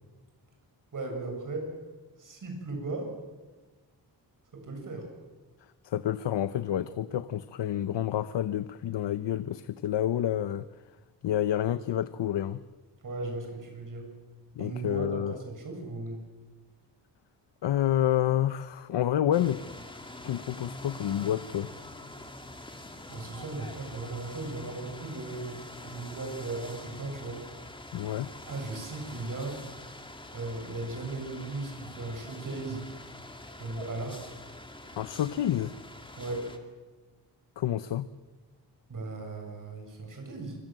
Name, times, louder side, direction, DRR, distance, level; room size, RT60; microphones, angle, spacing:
voice 1, 0.9-1.7 2.2-3.1 4.5-5.1 13.0-14.1 14.6-16.2 23.1-27.4 28.5-29.6 30.3-32.8 33.6-34.4 36.2-36.4 38.9-40.6, right 2 dB, 50° right, 2 dB, 7.8 m, -37 dB
voice 2, 5.8-10.7 11.2-12.6 14.5-15.4 17.6-19.6 20.2-21.7 27.9-28.3 35.0-35.7 37.6-38.1, left 11 dB, 85° left, 13 dB, 0.9 m, -29 dB
sound 1, 19.3-36.6, left 1 dB, 10° left, 2.4 m, -45 dB
27.5 x 25.5 x 7.8 m, 1.2 s
wide cardioid pair, 160°, 42 cm